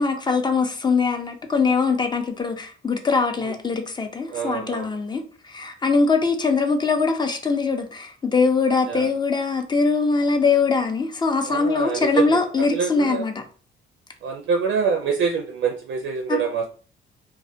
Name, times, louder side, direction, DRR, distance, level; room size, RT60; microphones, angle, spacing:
voice 1, 0.0-13.3 16.3-16.4, left 4 dB, 20° left, 0.5 m, -22 dB
voice 2, 4.3-4.9 8.9-9.1 11.5-13.3 14.2-16.7, right 6 dB, 70° right, 0.4 m, -26 dB
2.2 x 2.1 x 2.6 m
cardioid pair, 90°, 20 cm